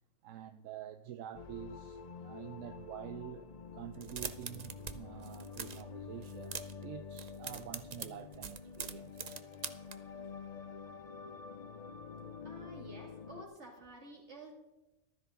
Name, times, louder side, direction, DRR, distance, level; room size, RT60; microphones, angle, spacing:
voice 1, 0.2-3.5 3.7-9.4, right 11 dB, 85° right, 1.0 m, -47 dB
sound 1, 1.3-13.4, left 5 dB, 45° left, 0.6 m, -48 dB
sound 2, 3.9-4.9 5.2-5.8 6.2-6.8 7.1-9.9, right 6 dB, 45° right, 0.6 m, -43 dB
voice 2, 12.4-14.5, right 2 dB, 60° right, 3.1 m, -51 dB
14.5 x 13.0 x 3.8 m
omnidirectional pair, 1.3 m